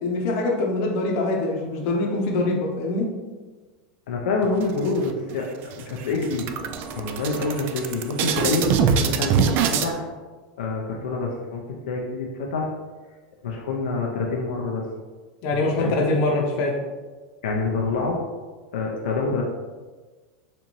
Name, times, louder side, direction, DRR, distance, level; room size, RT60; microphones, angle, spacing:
voice 1, 0.0-3.1 15.4-16.8, left 2 dB, 55° left, 0 dB, 0.8 m, -24 dB
voice 2, 4.1-6.5 6.9-8.7 9.0-10.1 10.6-12.7 13.4-14.9 15.8-16.1 17.4-18.2 18.7-19.4, left 3 dB, 85° left, -1 dB, 0.5 m, -26 dB
sound 1, 4.6-5.3 5.7-5.8 6.1-9.9, right 6 dB, 45° right, 0.3 m, -24 dB
4.2 x 2.6 x 3.0 m, 1.4 s
supercardioid pair, 130°, 5 cm